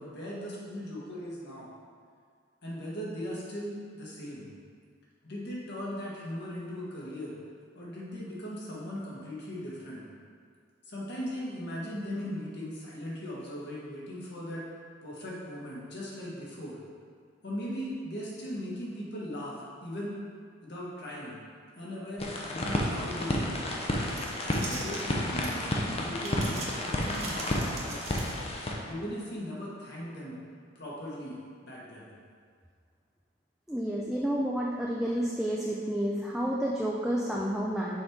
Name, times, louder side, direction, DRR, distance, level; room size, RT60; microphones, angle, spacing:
voice 1, 0.0-1.7 2.6-4.5 5.2-7.4 7.7-10.0 10.8-14.6 15.0-16.8 17.4-20.1 20.6-21.4 21.7-23.6 24.4-28.3 28.9-30.4 30.7-32.1, equal, 60° left, -6 dB, 1.5 m, -38 dB
sound 1, 22.2-28.7, left 1 dB, 30° left, 0.7 m, -31 dB
sound 2, 23.8-25.7 26.2-28.6, right 3 dB, 35° right, 0.9 m, -42 dB
voice 2, 33.7-38.0, equal, ahead, -4 dB, 0.4 m, -30 dB
6.3 x 4.6 x 3.6 m, 2.1 s
head